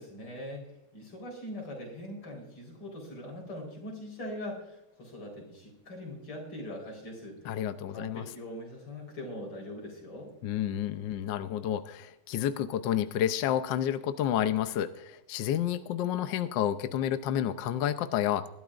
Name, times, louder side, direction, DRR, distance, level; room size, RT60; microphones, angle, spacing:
voice 1, 0.0-7.4 7.9-10.3, left 1 dB, 85° left, 0 dB, 5.0 m, -42 dB
voice 2, 7.4-8.2 10.4-18.5, left 10 dB, 70° left, 10 dB, 1.2 m, -30 dB
21.0 x 12.5 x 2.5 m, 0.86 s
omnidirectional pair, 2.3 m